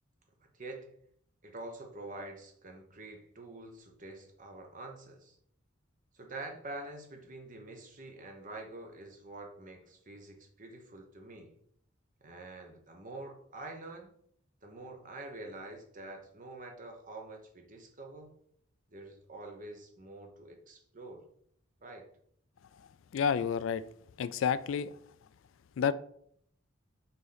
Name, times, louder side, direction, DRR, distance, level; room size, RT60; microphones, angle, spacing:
voice 1, 0.5-0.9 1.4-5.4 6.1-11.5 12.2-14.1 14.6-18.3 18.9-21.2 21.8-22.1, right 2 dB, 40° right, 3 dB, 1.1 m, -46 dB
voice 2, 23.1-23.8 24.2-24.9 25.8-25.9, left 7 dB, 80° left, 15 dB, 0.3 m, -29 dB
5.6 x 4.2 x 4.0 m, 0.66 s
head